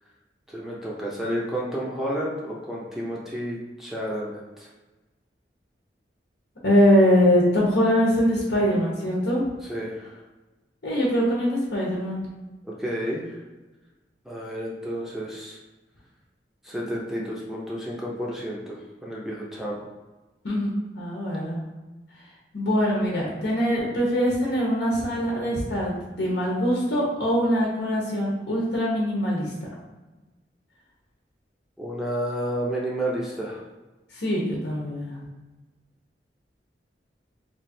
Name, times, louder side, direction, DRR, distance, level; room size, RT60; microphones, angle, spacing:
voice 1, 0.5-4.7 9.6-10.2 12.6-13.4 14.2-15.6 16.6-19.8 31.8-33.6, equal, ahead, -5 dB, 0.5 m, -31 dB
voice 2, 6.6-9.4 10.8-12.2 20.4-21.6 22.5-29.5 34.1-35.2, equal, 80° left, -4 dB, 0.9 m, -23 dB
3.2 x 2.4 x 4.2 m, 1.2 s
head